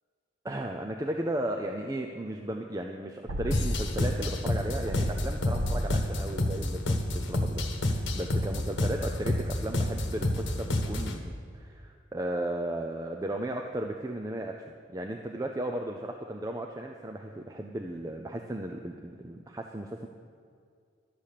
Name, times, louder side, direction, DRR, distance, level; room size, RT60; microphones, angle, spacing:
voice 1, 0.4-14.6 14.9-20.1, right 1 dB, 20° right, 2 dB, 0.5 m, -35 dB
sound 1, 3.3-4.3 4.9-5.8, equal, 90° right, 0.7 m, -34 dB
sound 2, 3.5-11.2, left 1 dB, 75° left, 1.2 m, -29 dB
12.0 x 7.4 x 6.6 m, 2.2 s
head